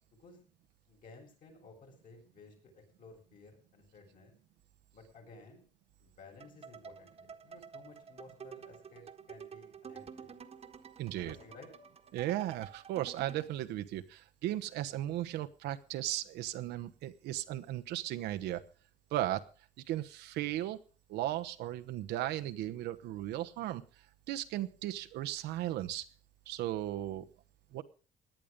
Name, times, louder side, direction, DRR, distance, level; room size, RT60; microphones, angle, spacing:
voice 1, 0.9-4.3 4.9-5.6 6.0-10.3 11.2-11.7, left 3 dB, 55° left, 1 dB, 7.5 m, -56 dB
sound 1, 6.4-13.5, right 7 dB, 35° right, 1.5 m, -50 dB
voice 2, 11.0-11.4 12.1-18.6 19.1-19.5 19.9-20.8 21.1-23.8 24.3-26.0 26.5-27.3 27.7-27.8, right 14 dB, 80° right, 8 dB, 1.1 m, -36 dB
18.0 x 10.5 x 5.3 m, 0.37 s
cardioid pair, 110°, 17 cm